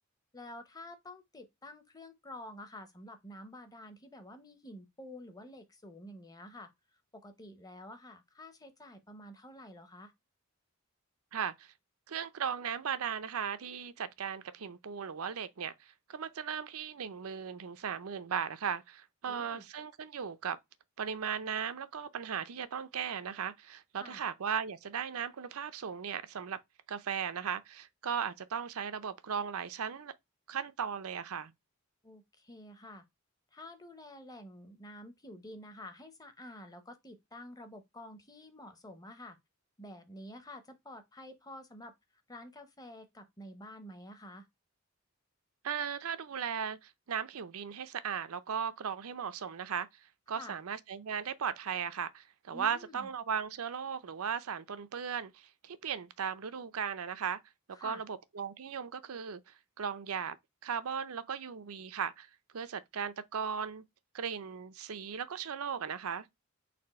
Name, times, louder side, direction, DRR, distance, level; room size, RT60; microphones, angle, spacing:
voice 1, 0.3-6.7 7.1-10.1 19.2-19.6 24.0-24.2 32.0-33.0 33.5-39.4 39.8-41.9 42.3-44.5 50.3-50.6 52.5-53.1 57.7-58.0, left 1 dB, 20° left, 0.8 m, -49 dB
voice 2, 11.3-11.7 12.1-20.6 21.0-26.6 26.9-30.1 30.5-31.5 45.6-49.9 50.3-57.4 57.8-60.4 60.6-63.8 64.1-66.3, right 7 dB, 85° right, 0.6 m, -37 dB
4.2 x 2.7 x 4.2 m
head